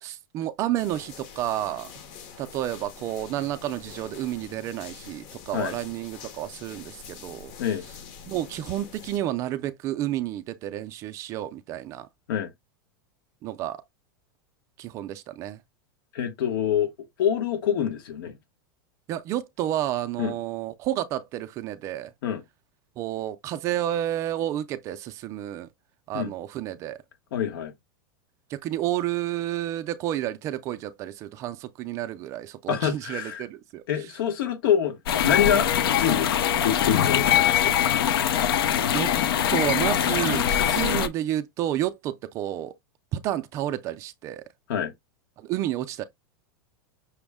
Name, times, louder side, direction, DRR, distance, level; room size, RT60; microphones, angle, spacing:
voice 1, 0.0-1.9 2.4-7.5 8.3-12.1 13.4-13.8 14.8-15.6 19.1-22.1 23.0-25.7 26.1-27.0 28.5-34.1 35.2-35.4 38.9-39.1 39.5-42.7 43.1-44.5 45.4-46.0, right 13 dB, 25° right, 0.3 m, -30 dB
sound 1, 0.8-9.2, left 7 dB, 40° left, 0.8 m, -45 dB
voice 2, 16.1-16.9 17.2-18.4 20.2-20.3 22.2-22.4 26.1-26.3 27.3-27.7 32.7-33.4 33.9-35.0 35.2-37.7 44.7-44.9, left 9 dB, 70° left, 1.1 m, -26 dB
sound 2, 35.1-41.1, left 10 dB, 90° left, 0.6 m, -22 dB
6.0 x 2.1 x 3.5 m
supercardioid pair, 170°, 12 cm